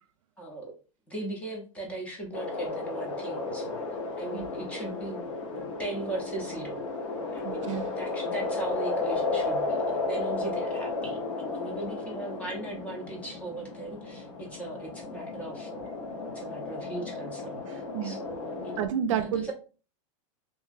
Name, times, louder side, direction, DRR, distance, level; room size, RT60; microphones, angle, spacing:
voice 1, 0.4-0.7 1.1-3.8 4.2-6.8 7.3-18.8 19.2-19.5, right 2 dB, 10° left, 0.5 m, -39 dB
sound 1, 2.3-18.9, left 3 dB, 70° left, 0.8 m, -34 dB
voice 2, 7.4-7.9 17.7-18.2 18.8-19.5, right 9 dB, 65° right, 0.4 m, -31 dB
2.8 x 2.5 x 2.4 m
supercardioid pair, 170°, 17 cm